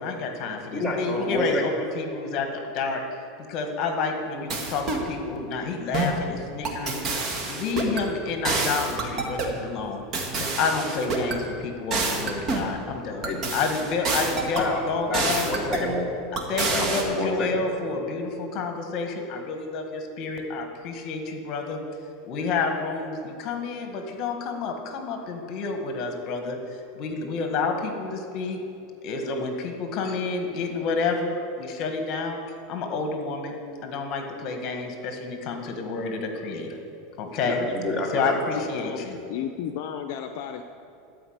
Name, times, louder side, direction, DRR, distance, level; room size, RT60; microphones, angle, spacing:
voice 1, 0.0-3.0 3.5-10.0 10.4-15.5 16.5-21.8 22.2-26.6 26.9-28.6 29.0-32.4 32.7-36.7 37.2-37.6 38.1-39.2, left 4 dB, 50° left, 4 dB, 1.5 m, -29 dB
voice 2, 0.7-1.6 13.2-13.4 14.6-16.1 16.7-17.6 37.4-38.6, left 2 dB, 10° left, -4 dB, 2.2 m, -28 dB
sound 1, 4.5-5.1 5.9-6.2 6.6-8.0 8.4-9.6 10.1-11.4 11.9-12.7 13.2-14.7 15.1-15.9 16.4-17.0, right 3 dB, 35° right, 1.7 m, -27 dB
voice 3, 38.5-40.6, left 9 dB, 65° left, 7 dB, 0.6 m, -34 dB
12.5 x 5.1 x 8.0 m, 2.6 s
supercardioid pair, 130°, 0 cm